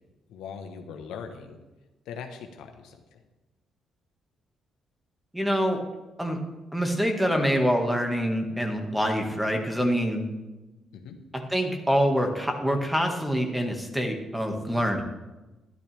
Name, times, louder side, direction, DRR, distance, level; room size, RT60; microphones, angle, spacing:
voice 1, 0.3-1.6 2.1-3.0 10.9-11.2, left 6 dB, 90° left, 5 dB, 1.1 m, -40 dB
voice 2, 5.3-5.8 6.2-6.4 6.7-10.2 11.3-15.0, equal, 5° right, 3 dB, 1.8 m, -25 dB
12.0 x 12.0 x 3.5 m, 1.1 s
cardioid pair, 90°, 0 cm